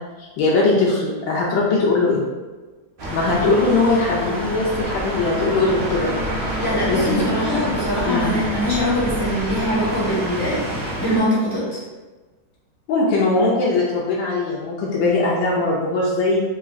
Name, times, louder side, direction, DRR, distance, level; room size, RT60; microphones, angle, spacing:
voice 1, 0.2-2.2 3.1-6.1 6.4-6.6 6.9-7.7 8.1-8.3 12.9-16.4, left 3 dB, 75° left, -5 dB, 1.3 m, -20 dB
sound 1, 3.0-11.2, equal, 55° right, 0.5 m, -27 dB
voice 2, 6.6-11.8, equal, 25° left, -9 dB, 0.5 m, -23 dB
4.9 x 2.4 x 2.5 m, 1.2 s
omnidirectional pair, 2.1 m